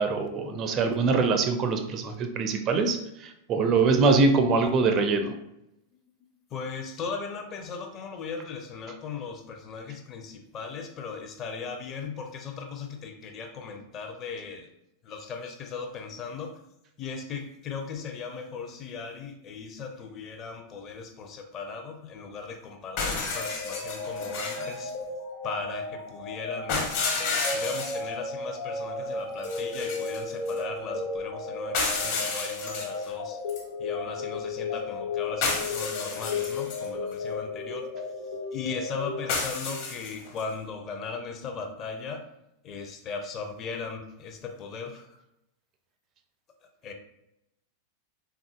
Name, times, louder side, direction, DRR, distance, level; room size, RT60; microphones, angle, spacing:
voice 1, 0.0-5.3, right 4 dB, 35° right, 7 dB, 0.4 m, -23 dB
voice 2, 6.2-14.7 15.0-16.6 17.0-25.0 25.4-33.4 33.8-37.9 38.2-42.3 42.6-45.2 46.8-46.9, left 5 dB, 30° left, 5 dB, 0.6 m, -38 dB
sound 1, 23.0-24.8 26.7-28.1 29.4-30.6 31.7-33.1 33.5-33.6 35.4-36.9 39.3-40.4, left 4 dB, 50° left, 1.0 m, -31 dB
sound 2, 23.3-39.9, left 3 dB, 70° left, 1.1 m, -34 dB
3.6 x 3.6 x 2.4 m, 0.85 s
figure-of-eight pair, 90°, 0 cm